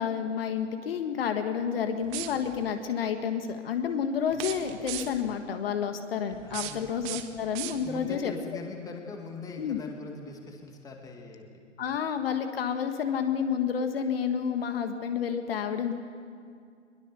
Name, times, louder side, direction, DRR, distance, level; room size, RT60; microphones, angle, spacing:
voice 1, 0.0-8.3 9.6-9.8 11.8-15.9, left 7 dB, 50° left, 7 dB, 1.6 m, -30 dB
sound 1, 2.0-2.7 4.3-5.3 6.3-8.2, right 14 dB, 25° right, 1.0 m, -39 dB
voice 2, 6.4-6.8 7.8-11.4, left 3 dB, 10° left, 2 dB, 2.1 m, -42 dB
21.5 x 21.0 x 6.9 m, 2.2 s
figure-of-eight pair, 135°, 38 cm